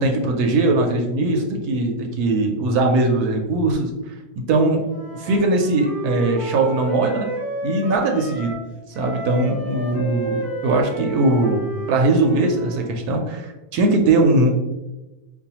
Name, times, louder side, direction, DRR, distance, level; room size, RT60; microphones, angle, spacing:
voice 1, 0.0-3.9 4.5-4.8 5.2-7.3 7.6-8.5 9.0-11.6 11.9-14.5, right 2 dB, 80° right, 3 dB, 1.1 m, -20 dB
Wind instrument woodwind instrument, 4.9-8.7 8.9-12.9, right 1 dB, ahead, 1.0 m, -32 dB
5.3 x 2.3 x 2.8 m, 1.0 s
omnidirectional pair, 1.7 m